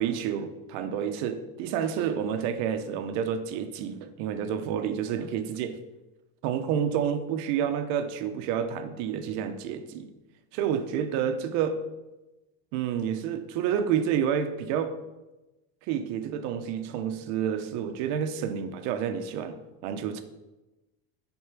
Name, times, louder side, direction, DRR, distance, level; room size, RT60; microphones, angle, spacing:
voice 1, 0.0-5.8 6.4-10.1 10.5-11.8 12.7-15.0 15.9-20.2, right 8 dB, 55° right, 9 dB, 0.9 m, -29 dB
9.6 x 4.6 x 5.9 m, 1.1 s
supercardioid pair, 150°, 34 cm